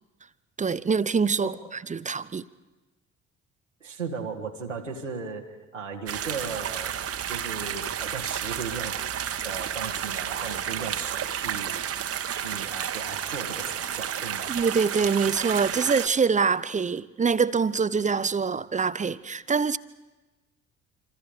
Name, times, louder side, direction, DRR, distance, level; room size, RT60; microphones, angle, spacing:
voice 1, 0.6-1.5 1.9-2.5 14.5-19.8, right 5 dB, 20° right, 0.7 m, -24 dB
voice 2, 3.8-6.9 7.3-11.9 12.3-14.5, right 5 dB, 90° right, 1.7 m, -36 dB
sound 1, 6.1-16.1, right 9 dB, 40° right, 1.3 m, -31 dB
27.0 x 26.5 x 5.0 m
figure-of-eight pair, 50°, 36 cm